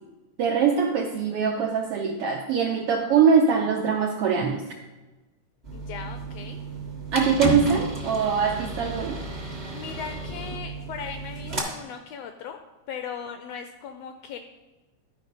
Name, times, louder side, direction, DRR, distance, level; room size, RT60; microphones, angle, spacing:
voice 1, 0.4-4.6 7.1-9.2, right 6 dB, 75° right, 2 dB, 1.4 m, -22 dB
sound 1, 5.6-11.6, right 2 dB, 25° right, 0.9 m, -33 dB
voice 2, 5.7-6.6 9.7-12.6 12.9-14.4, left 7 dB, 80° left, 7 dB, 1.5 m, -38 dB
12.5 x 4.8 x 5.2 m, 1.1 s
omnidirectional pair, 3.4 m